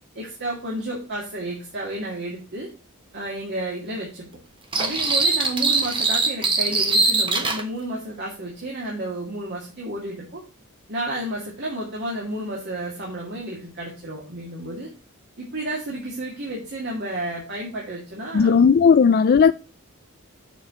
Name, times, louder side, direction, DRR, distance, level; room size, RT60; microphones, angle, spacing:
voice 1, 0.1-2.7 3.1-4.3 4.8-10.4 10.9-14.9 15.4-18.5 19.0-19.1, right 1 dB, 50° right, 2.1 m, -31 dB
sound 1, 4.7-7.6, right 3 dB, 25° right, 1.1 m, -21 dB
voice 2, 18.3-19.5, left 6 dB, 45° left, 0.3 m, -15 dB
6.6 x 4.8 x 6.8 m
head